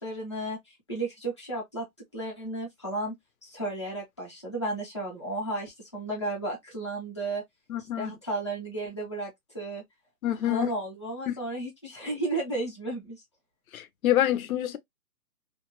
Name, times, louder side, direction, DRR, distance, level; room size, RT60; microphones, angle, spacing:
voice 1, 0.0-0.6 0.9-1.9 2.1-3.1 3.4-7.4 8.0-9.8 10.4-13.2, right 2 dB, 20° left, 0.5 m, -33 dB
voice 2, 7.7-8.1 10.2-10.7 11.3-11.4 13.7-14.8, left 12 dB, 65° left, 0.6 m, -26 dB
2.5 x 2.0 x 2.8 m
hypercardioid pair, 175°, 46 cm